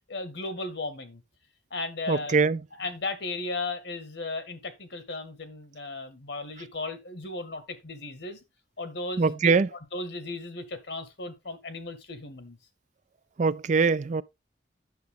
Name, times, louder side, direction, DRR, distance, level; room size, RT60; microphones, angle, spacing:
voice 1, 0.1-1.2 1.7-2.4 2.7-8.4 8.8-12.6, left 2 dB, 75° left, 1.9 m, -36 dB
voice 2, 2.1-2.6 9.2-9.7 13.4-14.2, right 4 dB, 45° right, 0.4 m, -22 dB
9.5 x 7.0 x 3.7 m
head